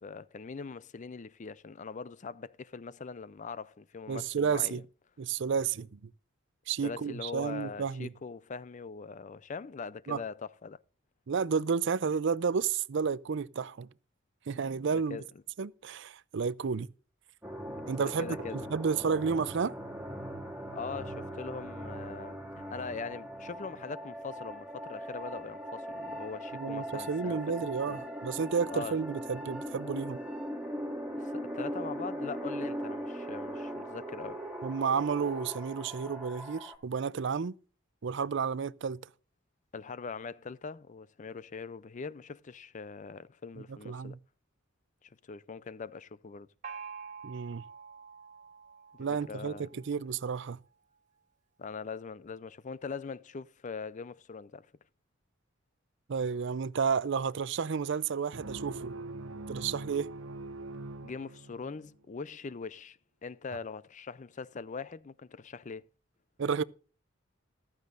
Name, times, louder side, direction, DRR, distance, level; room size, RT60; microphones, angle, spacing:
voice 1, 0.0-4.8 6.8-10.8 14.9-15.3 18.0-18.7 20.7-27.4 27.9-28.0 28.7-29.0 31.1-34.4 39.7-44.2 45.0-46.5 48.9-49.7 51.6-54.7 61.0-65.9, left 5 dB, 35° left, 0.4 m, -42 dB
voice 2, 4.1-4.8 5.2-6.0 6.7-8.1 10.1-10.2 11.3-13.9 14.5-15.2 15.6-16.9 17.9-19.8 26.5-30.2 34.6-37.5 38.0-39.0 43.8-44.2 47.2-47.6 49.0-50.6 56.1-59.0 59.5-60.1 66.4-66.6, right 6 dB, 60° right, 0.5 m, -31 dB
sound 1, 17.4-36.7, equal, 5° right, 2.2 m, -40 dB
Gong, 46.6-50.1, right 6 dB, 40° right, 1.4 m, -47 dB
sound 2, 58.3-61.9, right 2 dB, 80° right, 0.9 m, -42 dB
14.5 x 13.5 x 2.5 m
head